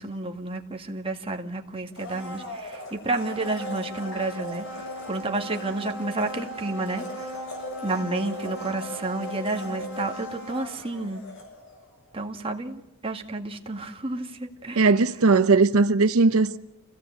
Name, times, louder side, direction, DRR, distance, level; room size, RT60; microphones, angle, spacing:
voice 1, 0.0-4.7 5.1-7.3 7.8-11.2 12.1-14.9, right 2 dB, 25° right, 1.9 m, -31 dB
Domestic sounds home sounds, 1.9-11.9 12.2-12.3, equal, 65° left, 6.8 m, -37 dB
voice 2, 14.8-16.6, right 3 dB, 85° right, 0.7 m, -19 dB
27.0 x 17.0 x 8.3 m
head